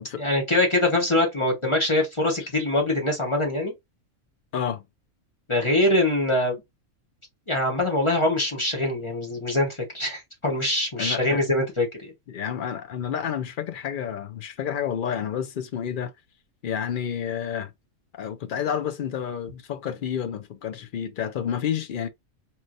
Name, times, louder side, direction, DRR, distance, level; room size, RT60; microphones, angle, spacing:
voice 1, 0.0-3.7 5.5-6.6 7.5-12.1, left 1 dB, 25° left, 1.1 m, -23 dB
voice 2, 4.5-4.8 11.0-11.4 12.3-16.1 16.6-17.7 18.1-22.1, left 8 dB, 60° left, 0.5 m, -30 dB
4.3 x 3.1 x 2.5 m
omnidirectional pair, 1.4 m